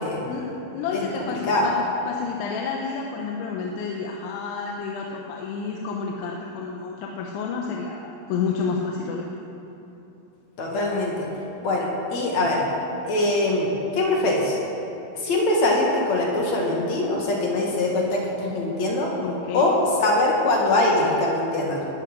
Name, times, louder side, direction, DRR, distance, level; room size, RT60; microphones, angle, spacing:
voice 1, 0.2-1.8 2.1-9.3 19.2-19.7, left 5 dB, 90° left, 0 dB, 3.4 m, -30 dB
voice 2, 10.6-11.3 11.6-12.6 13.0-14.6 15.1-19.1 19.5-21.9, left 2 dB, 45° left, -2 dB, 2.8 m, -22 dB
19.0 x 11.0 x 6.3 m, 3.0 s
omnidirectional pair, 5.2 m